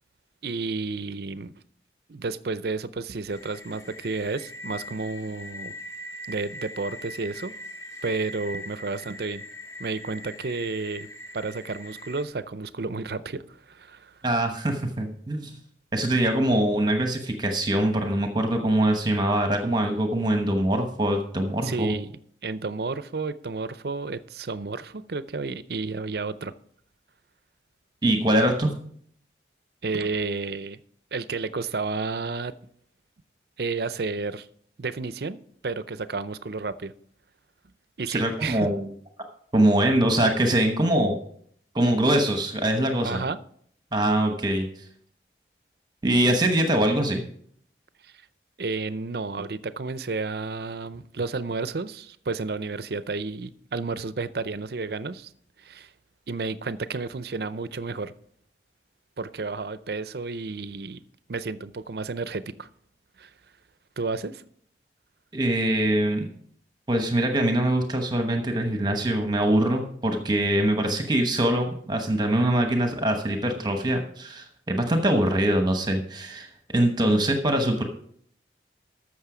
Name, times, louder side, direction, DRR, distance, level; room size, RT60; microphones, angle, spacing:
voice 1, 0.4-1.5 2.1-5.7 6.3-7.5 8.0-9.4 9.8-11.1 11.3-14.1 21.6-22.1 22.4-26.5 29.8-30.8 31.1-32.5 33.6-34.5 34.8-36.9 38.0-38.7 43.0-43.4 48.0-48.1 48.6-55.3 55.6-55.9 56.3-58.1 59.2-61.0 61.3-62.7 63.2-63.3 64.0-64.4, right 3 dB, 55° right, 0.5 m, -31 dB
sound 1, 3.3-12.2, left 1 dB, 15° left, 0.9 m, -41 dB
voice 2, 14.2-15.5 15.9-21.9 28.0-28.7 38.1-38.9 39.5-41.2 41.7-43.2 43.9-44.7 46.0-47.2 65.3-66.3 66.9-77.8, right 1 dB, 25° right, 1.1 m, -23 dB
14.0 x 6.4 x 5.0 m
head